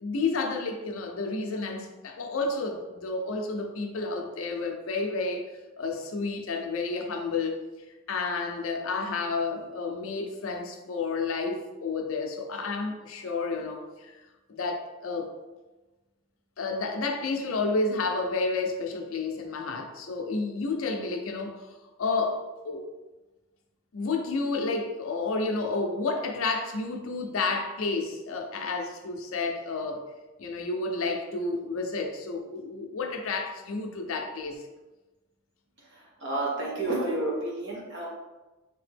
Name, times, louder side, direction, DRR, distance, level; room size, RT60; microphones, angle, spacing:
voice 1, 0.0-5.5 5.8-7.6 8.1-14.1 14.6-15.3 16.6-21.7 22.0-22.9 23.9-30.0 30.4-34.6, left 3 dB, 75° left, 3 dB, 0.5 m, -30 dB
voice 2, 36.2-38.1, right 2 dB, 55° right, -4 dB, 1.1 m, -30 dB
3.4 x 2.9 x 3.3 m, 1.1 s
head